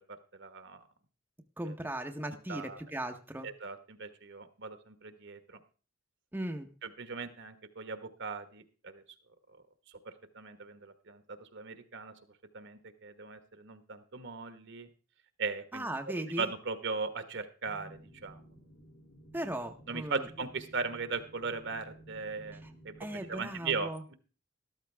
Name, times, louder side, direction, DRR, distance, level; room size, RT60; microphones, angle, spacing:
voice 1, 0.1-0.8 1.7-1.8 2.2-2.8 3.4-5.6 6.8-9.0 9.5-9.6 10.0-12.2 12.5-14.9 15.4-18.4 19.9-24.1, right 4 dB, 60° right, 10 dB, 1.3 m, -39 dB
voice 2, 1.6-3.5 6.3-6.7 15.7-16.5 19.3-20.2 23.0-24.0, right 1 dB, 10° right, 4 dB, 0.8 m, -37 dB
sound 1, 17.6-23.6, right 1 dB, 60° left, 2.6 m, -54 dB
13.5 x 13.0 x 3.4 m, 0.37 s
head